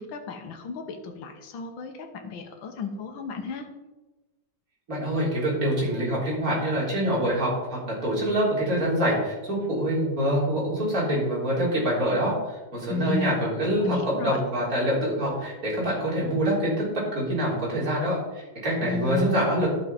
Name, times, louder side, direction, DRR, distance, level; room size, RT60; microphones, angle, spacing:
voice 1, 0.0-3.6 12.9-13.4 13.8-14.4 18.8-19.4, left 4 dB, 75° left, 4 dB, 1.9 m, -32 dB
voice 2, 4.9-19.7, equal, 45° right, -6 dB, 4.5 m, -25 dB
11.5 x 6.5 x 5.1 m, 1.1 s
omnidirectional pair, 2.2 m